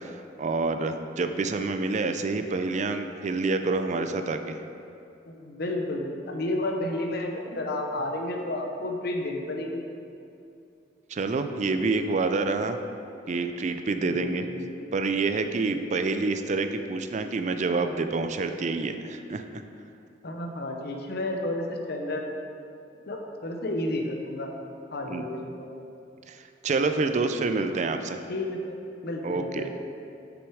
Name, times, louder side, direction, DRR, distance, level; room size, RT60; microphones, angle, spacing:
voice 1, 0.0-4.6 11.1-12.8 13.3-14.5 14.9-19.6 25.1-25.3 26.3-28.2 29.2-29.7, right 3 dB, 40° right, 8 dB, 0.4 m, -27 dB
voice 2, 5.3-9.8 14.0-14.9 20.2-22.2 23.1-24.5 24.9-25.7 27.4-27.6 28.3-28.7 29.0-29.7, left 1 dB, 60° left, 2 dB, 0.8 m, -31 dB
6.6 x 6.1 x 4.8 m, 2.6 s
head